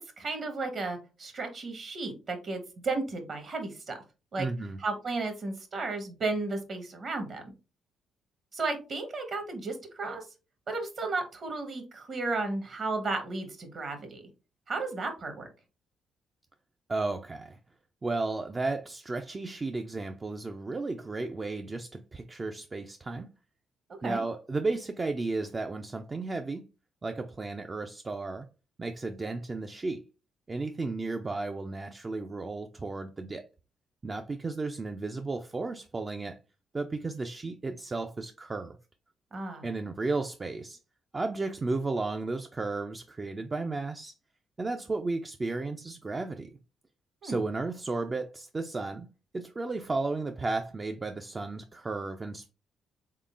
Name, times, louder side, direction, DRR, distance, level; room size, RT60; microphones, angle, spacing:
voice 1, 0.0-4.0 4.3-4.5 4.8-7.4 8.5-10.3 10.7-14.3 14.7-15.5 24.0-24.2 39.3-39.6 47.2-47.4, right 3 dB, 50° right, 1.1 m, -34 dB
voice 2, 4.4-4.8 16.9-17.6 18.0-23.3 24.0-26.7 27.0-28.5 28.8-30.0 30.5-33.5 34.0-36.4 36.7-38.8 39.6-40.8 41.1-44.1 44.6-46.6 47.2-49.1 49.3-52.5, right 3 dB, 30° right, 0.3 m, -33 dB
3.7 x 3.7 x 2.4 m
cardioid pair, 90°, 0 cm